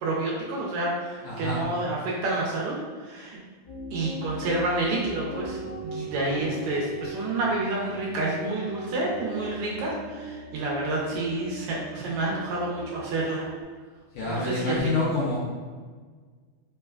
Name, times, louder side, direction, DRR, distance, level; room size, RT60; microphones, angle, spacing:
voice 1, 0.0-2.7 3.0-3.4 3.9-13.4 14.3-14.9, right 2 dB, 80° right, -4 dB, 1.8 m, -29 dB
voice 2, 1.2-1.6 14.1-15.4, left 3 dB, 75° left, -8 dB, 1.6 m, -27 dB
sound 1, 3.6-13.6, right 1 dB, 50° left, 1.5 m, -39 dB
4.8 x 2.2 x 2.3 m, 1.5 s
omnidirectional pair, 3.5 m